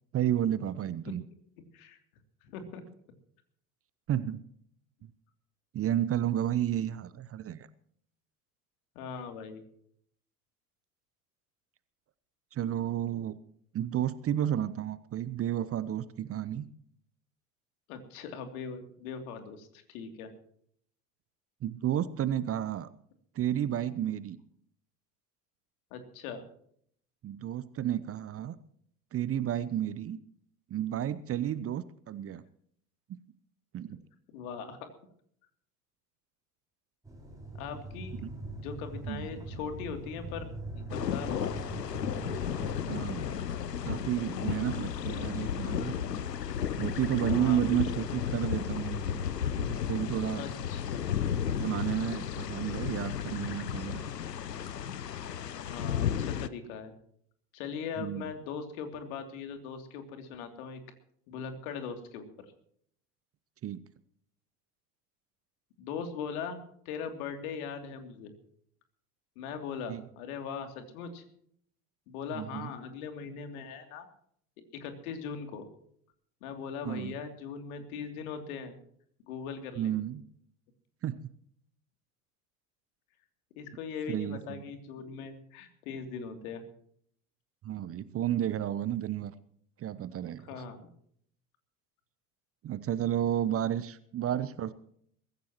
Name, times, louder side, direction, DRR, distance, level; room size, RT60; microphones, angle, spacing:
voice 1, 0.1-1.2 4.1-4.4 5.0-5.1 5.7-7.7 12.5-13.4 13.7-16.6 21.6-22.9 23.4-24.4 27.2-28.5 29.1-30.2 30.7-32.4 33.1-33.2 33.7-34.0 39.1-39.3 42.9-43.3 43.8-45.9 46.8-49.2 49.5-50.5 51.6-54.0 58.0-58.3 63.6-63.8 69.9-70.0 72.3-72.7 76.8-77.1 79.8-80.2 81.0-81.2 84.1-84.6 87.6-89.3 89.8-90.5 92.6-94.7, right 11 dB, 30° right, 16 dB, 0.8 m, -31 dB
voice 2, 2.4-2.8 8.9-9.6 17.9-20.3 25.9-26.4 34.3-34.9 37.5-38.1 38.6-40.5 40.7-41.7 47.1-48.1 50.3-51.2 55.7-56.9 57.5-60.8 61.3-62.3 65.8-66.6 66.8-68.3 69.4-71.2 72.1-74.1 74.8-75.7 76.4-78.8 79.3-79.9 83.6-86.6 90.5-90.9, left 6 dB, 60° left, 6 dB, 3.0 m, -40 dB
sound 1, 37.0-42.8, right 1 dB, 5° right, 6.2 m, -41 dB
sound 2, 40.9-56.5, left 8 dB, 85° left, 0.8 m, -33 dB
23.0 x 14.5 x 3.0 m, 0.65 s
figure-of-eight pair, 70°, 47 cm